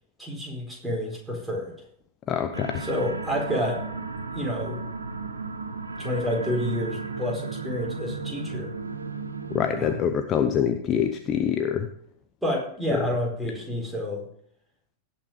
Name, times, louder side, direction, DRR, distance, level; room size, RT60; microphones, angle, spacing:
voice 1, 0.2-1.7 2.8-3.8 4.3-4.8 6.0-8.7 9.8-10.0 12.4-14.2, left 1 dB, ahead, -2 dB, 4.4 m, -29 dB
voice 2, 2.3-2.8 9.5-11.9 12.9-13.0, left 8 dB, 30° left, 8 dB, 0.8 m, -25 dB
sound 1, 2.5-10.0, right 4 dB, 75° right, 1.1 m, -34 dB
17.5 x 5.9 x 5.1 m, 0.62 s
figure-of-eight pair, 90°, 0 cm